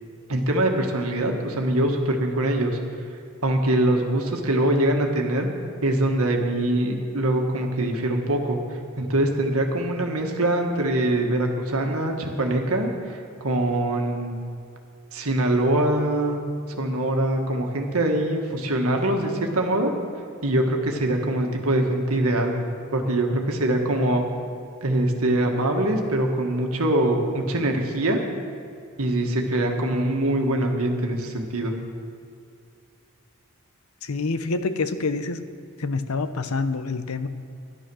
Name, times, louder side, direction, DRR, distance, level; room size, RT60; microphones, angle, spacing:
voice 1, 0.3-2.8 3.4-5.5 5.8-14.3 15.1-16.4 16.8-19.9 20.4-22.5 22.9-24.2 24.8-28.2 29.0-31.7, right 1 dB, 80° right, 2 dB, 1.6 m, -23 dB
voice 2, 34.0-35.4 35.8-37.3, left 3 dB, 90° left, 11 dB, 0.8 m, -27 dB
13.0 x 11.5 x 6.3 m, 2.5 s
head